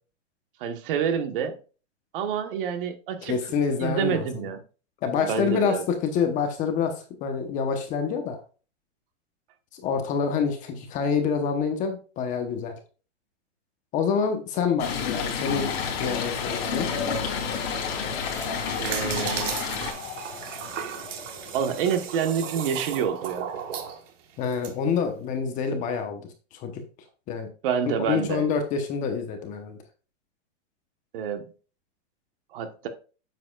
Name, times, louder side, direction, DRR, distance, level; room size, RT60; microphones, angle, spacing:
voice 1, 0.6-1.6 2.1-3.4 3.8-4.6 5.2-5.8 18.8-19.5 21.5-23.5 27.6-28.4 31.1-31.4 32.5-32.9, right 7 dB, 45° right, 1.3 m, -28 dB
voice 2, 3.2-4.3 5.0-8.4 9.7-12.7 13.9-16.9 24.4-26.2 26.5-26.8 27.3-27.5 27.9-29.8, left 6 dB, 20° left, 0.9 m, -27 dB
Stream, 14.8-19.9, left 6 dB, 60° left, 3.4 m, -30 dB
sound 1, 15.5-22.8, left 5 dB, 40° left, 1.8 m, -38 dB
sound 2, 18.1-24.7, right 8 dB, 85° right, 1.5 m, -35 dB
9.2 x 7.3 x 2.4 m
supercardioid pair, 160°, 36 cm